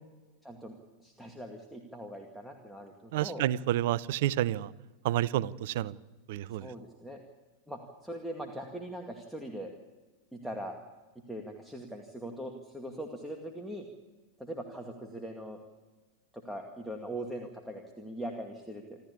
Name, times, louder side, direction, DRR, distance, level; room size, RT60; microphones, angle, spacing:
voice 1, 0.4-0.7 1.0-3.4 6.5-7.2 7.7-9.7 10.3-10.7 11.3-13.9 14.4-15.6 16.3-19.0, right 1 dB, ahead, 1 dB, 2.3 m, -41 dB
voice 2, 3.1-4.7 5.0-5.9 6.3-6.7, right 13 dB, 50° right, 20 dB, 0.7 m, -29 dB
27.5 x 13.5 x 8.7 m, 1.2 s
figure-of-eight pair, 90°, 0 cm